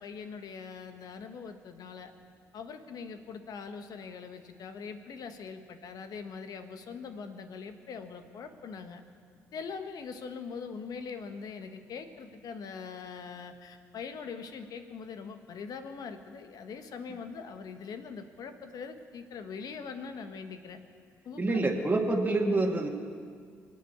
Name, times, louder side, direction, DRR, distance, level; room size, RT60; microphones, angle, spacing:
voice 1, 0.0-2.1 2.5-9.0 9.5-20.8 21.2-21.9, left 5 dB, 65° left, 8 dB, 1.3 m, -42 dB
voice 2, 21.4-22.9, right 2 dB, 25° right, -1 dB, 2.3 m, -27 dB
25.0 x 8.4 x 6.8 m, 2.1 s
hypercardioid pair, 50°, 7 cm